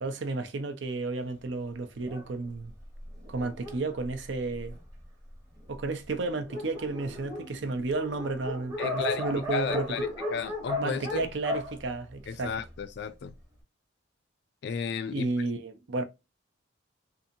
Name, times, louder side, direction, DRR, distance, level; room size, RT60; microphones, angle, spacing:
voice 1, 0.0-2.7 3.3-4.8 5.7-9.9 10.8-12.5 15.1-16.0, right 3 dB, 65° right, 0.6 m, -32 dB
Dog, 2.0-5.0 5.7-5.8 6.1-6.2 6.4-12.8, left 2 dB, 15° right, 0.8 m, -36 dB
voice 2, 8.8-9.2 9.5-11.3 12.3-13.3 14.6-15.3, left 6 dB, 55° left, 0.3 m, -33 dB
2.7 x 2.6 x 2.5 m
head